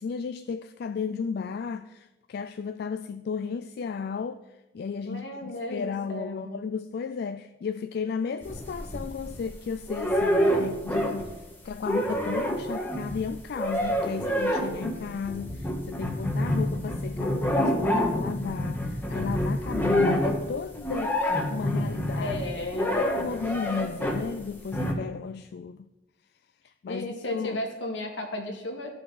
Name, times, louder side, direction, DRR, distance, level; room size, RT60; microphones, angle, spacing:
voice 1, 0.0-4.4 4.7-22.3 23.0-25.9 26.6-27.6, left 6 dB, 60° left, 0.3 m, -34 dB
voice 2, 5.1-6.6 22.2-22.9 26.9-29.0, left 1 dB, 80° left, 1.8 m, -34 dB
sound 1, 8.4-9.5 9.9-11.4 11.6-24.3 24.7-24.9, equal, 10° left, 1.2 m, -27 dB
14.5 x 5.7 x 4.0 m
head